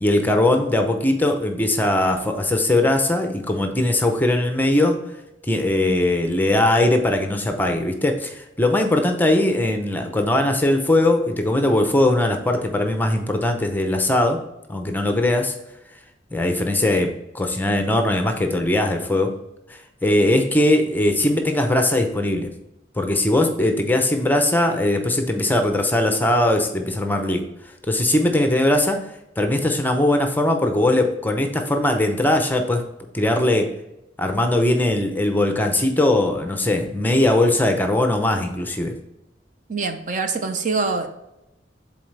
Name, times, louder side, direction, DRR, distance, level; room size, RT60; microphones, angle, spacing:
voice 1, 0.0-5.0 5.5-14.4 14.7-15.5 16.3-19.3 19.7-22.5 23.0-27.4 27.9-29.1 29.4-32.8 33.1-33.7 34.2-38.9, left 1 dB, 10° left, 5 dB, 0.6 m, -20 dB
voice 2, 39.7-41.1, right 4 dB, 45° right, 6 dB, 0.7 m, -24 dB
7.7 x 3.9 x 3.3 m, 0.88 s
head